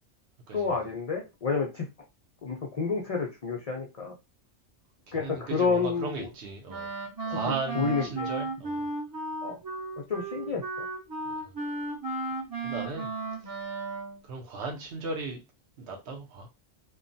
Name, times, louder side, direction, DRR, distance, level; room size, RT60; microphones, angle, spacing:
voice 1, 0.5-1.9 2.4-4.1 5.1-6.1 7.7-8.3 9.4-9.6 10.1-10.8, left 5 dB, 55° left, 0.4 m, -29 dB
voice 2, 5.1-6.9 7.3-8.9 11.3-11.5 12.6-13.1 13.4-13.6 14.2-15.4 15.8-16.5, right 4 dB, 60° right, 1.0 m, -37 dB
Wind instrument woodwind instrument, 6.7-14.2, right 2 dB, 20° right, 0.7 m, -34 dB
3.0 x 2.1 x 2.6 m
omnidirectional pair, 1.3 m